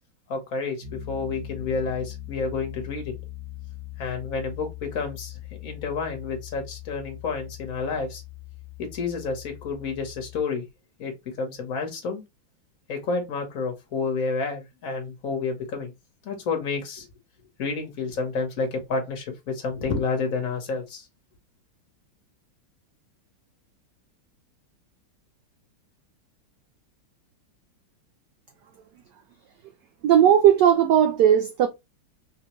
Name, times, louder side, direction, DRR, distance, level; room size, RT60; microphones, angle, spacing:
voice 1, 0.3-3.1 4.0-8.2 8.8-10.6 11.0-12.2 12.9-15.9 16.2-17.1 17.6-21.0, left 4 dB, 50° left, 1.2 m, -30 dB
Piano, 0.8-10.4, left 13 dB, 60° right, 1.5 m, -41 dB
voice 2, 30.0-31.7, right 9 dB, 80° right, 0.9 m, -17 dB
4.2 x 2.3 x 2.9 m
omnidirectional pair, 2.4 m